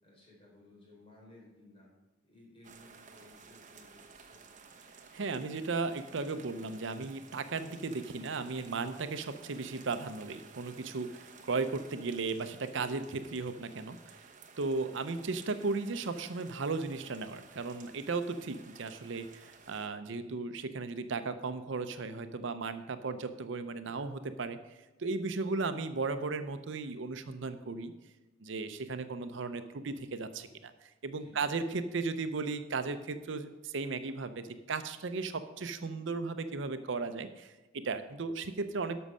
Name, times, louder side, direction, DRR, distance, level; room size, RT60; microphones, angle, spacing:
voice 1, 0.0-1.9 2.2-4.5 31.2-31.5, left 2 dB, 30° left, -3 dB, 3.7 m, -58 dB
sound 1, 2.6-19.9, right 5 dB, 40° right, 1.0 m, -55 dB
voice 2, 5.1-14.3 14.6-24.6 25.0-27.9 28.4-39.0, right 4 dB, 65° right, 10 dB, 0.6 m, -36 dB
12.5 x 6.2 x 5.5 m, 1.1 s
head